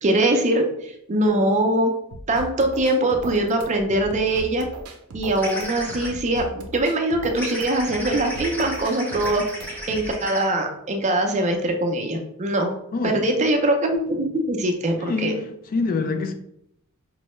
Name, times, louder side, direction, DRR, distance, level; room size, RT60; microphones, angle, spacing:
voice 1, 0.0-1.9 2.3-4.7 5.1-9.4 9.9-12.7 13.0-15.4, right 1 dB, 35° right, 0.5 m, -22 dB
sound 1, 2.1-10.1, right 2 dB, 90° right, 0.6 m, -38 dB
sound 2, 5.4-6.1 7.4-10.5, equal, 10° left, 0.8 m, -33 dB
voice 2, 12.9-13.5 15.0-16.3, left 4 dB, 40° left, 0.3 m, -26 dB
4.5 x 2.1 x 3.0 m
head